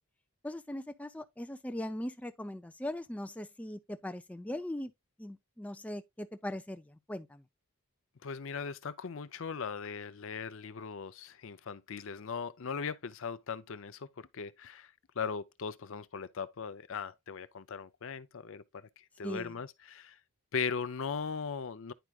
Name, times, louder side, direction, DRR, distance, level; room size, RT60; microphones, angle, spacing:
voice 1, 0.4-4.9 5.2-7.4 19.2-19.5, left 1 dB, 5° left, 0.4 m, -40 dB
voice 2, 8.2-20.2 20.5-21.9, left 5 dB, 60° left, 0.5 m, -39 dB
10.0 x 4.7 x 2.3 m
head